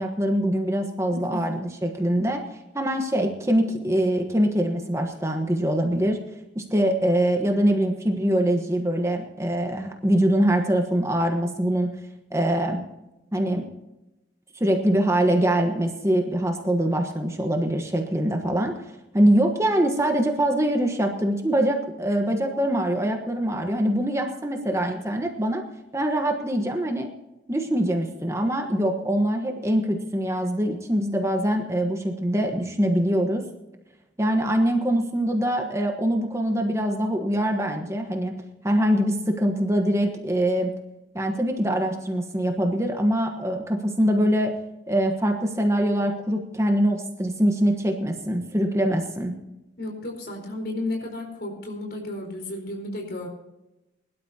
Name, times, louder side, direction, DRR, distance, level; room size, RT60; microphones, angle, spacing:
voice 1, 0.0-2.4 2.7-6.2 6.5-11.9 12.3-12.8 13.3-13.6 14.5-18.7 19.1-25.6 25.9-27.1 27.5-33.4 34.2-38.3 38.6-40.7 41.1-44.6 44.9-49.3, right 1 dB, 15° right, 3 dB, 1.2 m, -23 dB
voice 2, 49.8-53.3, left 2 dB, 55° left, 2 dB, 4.3 m, -33 dB
22.0 x 12.0 x 2.8 m, 0.95 s
head